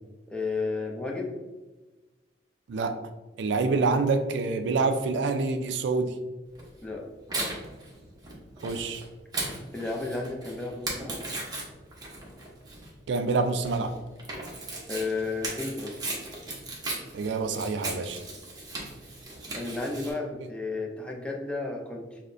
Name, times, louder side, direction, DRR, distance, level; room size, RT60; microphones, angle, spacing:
voice 1, 0.3-1.4 6.8-7.1 7.3-7.6 9.7-11.3 14.9-16.0 19.5-22.2, left 3 dB, 5° left, 0.4 m, -33 dB
voice 2, 2.7-3.0 3.4-6.2 8.6-9.0 13.1-14.0 17.1-18.2, right 3 dB, 70° right, 0.3 m, -26 dB
Tearing, 6.6-20.1, right 2 dB, 20° right, 0.8 m, -37 dB
6.2 x 2.1 x 2.5 m
head